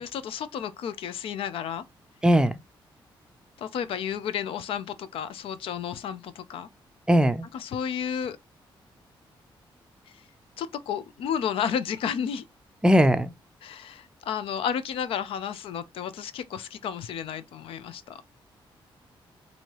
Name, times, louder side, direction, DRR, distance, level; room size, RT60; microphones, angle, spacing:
voice 1, 0.0-1.8 3.6-6.7 7.5-8.4 10.6-12.4 13.6-18.2, left 8 dB, 85° left, 0.5 m, -32 dB
voice 2, 2.2-2.5 7.1-7.5 12.8-13.3, equal, 10° right, 0.4 m, -19 dB
4.6 x 2.7 x 2.9 m
cardioid pair, 120°, 9 cm